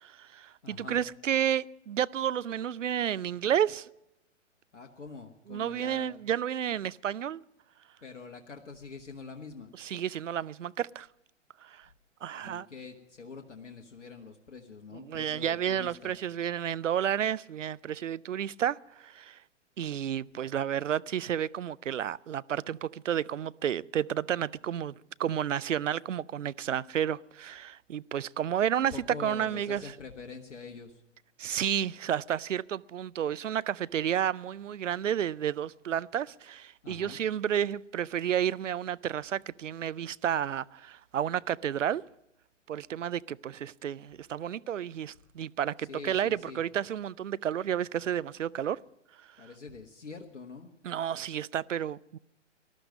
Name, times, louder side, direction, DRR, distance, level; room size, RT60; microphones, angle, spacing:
voice 1, 0.0-3.9 5.5-7.4 9.8-11.1 11.6-11.9 12.2-12.7 14.9-19.4 19.8-24.9 25.2-29.9 31.4-42.0 42.7-48.8 50.8-52.2, right 9 dB, 80° right, 0.5 m, -31 dB
voice 2, 0.6-1.0 4.7-6.1 8.0-9.7 12.3-16.1 28.7-31.0 36.8-37.2 45.8-46.6 49.4-50.7, left 4 dB, 75° left, 1.4 m, -45 dB
19.5 x 12.0 x 5.3 m
figure-of-eight pair, 120°, 37 cm